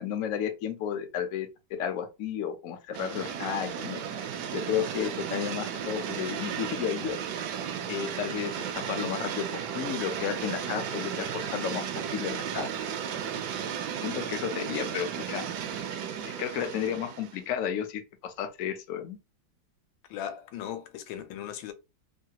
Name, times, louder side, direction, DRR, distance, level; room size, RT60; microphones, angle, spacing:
voice 1, 0.0-7.2 7.9-12.9 14.0-15.4 16.2-19.2, left 9 dB, 70° left, 0.8 m, -33 dB
sound 1, 2.9-17.4, right 8 dB, 70° right, 1.1 m, -34 dB
voice 2, 20.1-21.7, left 10 dB, 90° left, 1.4 m, -38 dB
3.2 x 2.2 x 2.8 m
omnidirectional pair, 2.1 m